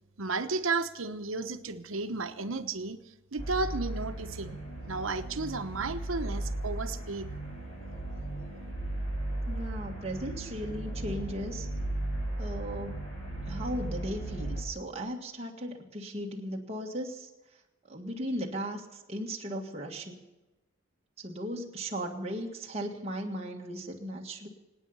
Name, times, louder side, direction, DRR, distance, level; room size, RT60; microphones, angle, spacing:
voice 1, 0.2-3.0 3.3-4.6 4.9-7.3, right 3 dB, 80° right, 9 dB, 1.1 m, -33 dB
sound 1, 3.4-14.6, right 1 dB, 35° left, 6.0 m, -36 dB
voice 2, 9.5-11.7 12.4-13.0 13.4-17.3 17.9-20.2 21.2-24.5, equal, 30° right, -1 dB, 1.6 m, -37 dB
26.5 x 9.2 x 5.6 m, 1.1 s
head